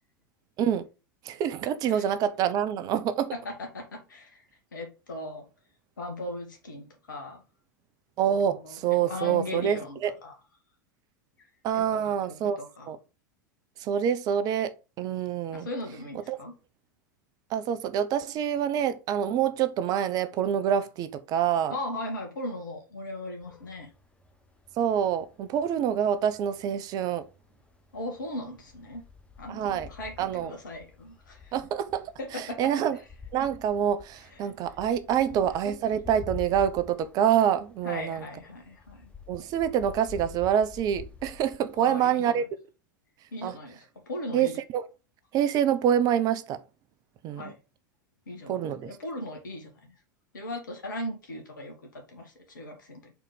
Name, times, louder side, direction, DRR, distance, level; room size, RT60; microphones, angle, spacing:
voice 1, 1.2-3.3 8.2-10.1 11.6-12.6 12.9-13.0 13.8-15.7 16.3-16.4 17.5-21.7 24.8-27.2 29.5-29.9 30.2-30.5 31.5-33.0 33.3-38.2 39.3-42.4 43.4-43.5 44.3-44.9 45.3-46.6 47.2-47.5 48.5-49.0, right 9 dB, 35° right, 0.7 m, -26 dB
voice 2, 3.3-4.4 4.7-5.5 6.0-7.4 8.5-10.3 11.4-11.5 11.7-12.9 15.5-16.6 21.7-23.9 27.9-29.0 29.4-31.5 32.2-32.7 34.3-34.4 35.1-35.5 37.8-39.1 41.7-42.4 43.3-44.6 47.3-47.6 48.3-50.0 50.3-53.1, left 1 dB, 70° left, 2.0 m, -38 dB
sound 1, 23.4-41.8, left 6 dB, 10° left, 0.7 m, -48 dB
4.6 x 4.1 x 5.1 m
figure-of-eight pair, 85°, 11 cm